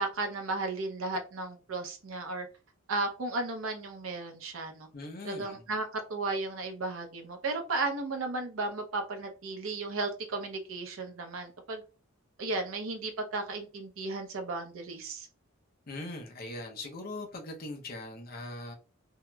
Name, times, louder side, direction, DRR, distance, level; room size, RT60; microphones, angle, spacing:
voice 1, 0.0-2.5 2.9-4.9 5.2-11.8 12.4-15.3, right 3 dB, 80° right, 0.6 m, -34 dB
voice 2, 4.9-5.6 15.9-18.7, left 2 dB, 45° left, 0.7 m, -40 dB
3.0 x 2.8 x 2.2 m
head